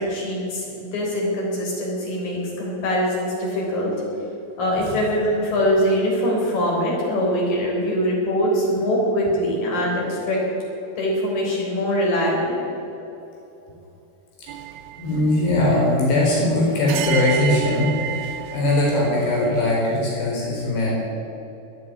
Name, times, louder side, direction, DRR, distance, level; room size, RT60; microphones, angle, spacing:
voice 1, 0.0-3.9 4.6-10.4 11.0-12.6, equal, 60° left, -3 dB, 5.6 m, -23 dB
sound 1, 14.5-19.9, right 11 dB, 85° right, 2.8 m, -32 dB
voice 2, 15.0-21.0, left 1 dB, 80° left, -4 dB, 6.4 m, -21 dB
19.5 x 7.0 x 9.7 m, 2.9 s
omnidirectional pair, 4.7 m